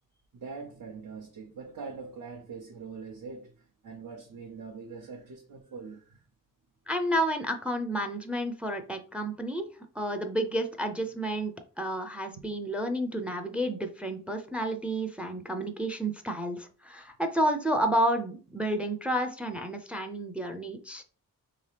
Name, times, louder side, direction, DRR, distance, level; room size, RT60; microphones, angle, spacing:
voice 1, 0.3-6.2 12.3-12.4, right 5 dB, 70° right, 0.6 m, -43 dB
voice 2, 6.9-9.7 10.0-11.5 11.8-21.0, right 1 dB, 5° right, 0.4 m, -30 dB
3.2 x 2.8 x 3.3 m
wide cardioid pair, 115°, 34 cm